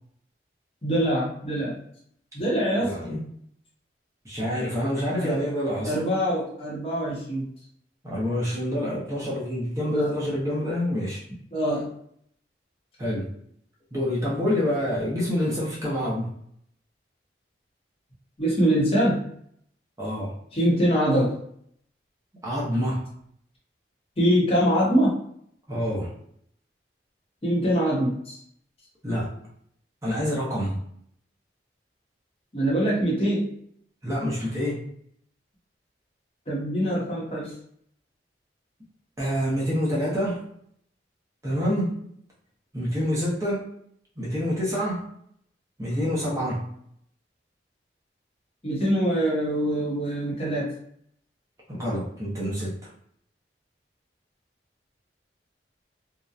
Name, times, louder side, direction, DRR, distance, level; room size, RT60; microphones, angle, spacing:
voice 1, 0.8-1.8 2.3-3.0 5.2-5.5 5.8-7.5 9.9-10.2 11.5-11.9 18.4-19.3 20.5-21.4 24.2-25.2 27.4-28.4 32.5-33.5 36.5-37.5 48.6-50.7, equal, 30° left, -5 dB, 0.7 m, -24 dB
voice 2, 2.8-3.2 4.2-6.0 8.0-11.2 13.0-13.3 13.9-16.3 20.0-20.3 22.4-23.0 25.7-26.1 29.0-29.3 30.0-30.8 34.0-34.8 39.2-40.4 41.4-42.0 42.7-43.7 44.2-45.1 45.8-46.7 51.7-52.8, equal, 15° right, -6 dB, 0.6 m, -27 dB
2.7 x 2.1 x 2.3 m, 0.67 s
head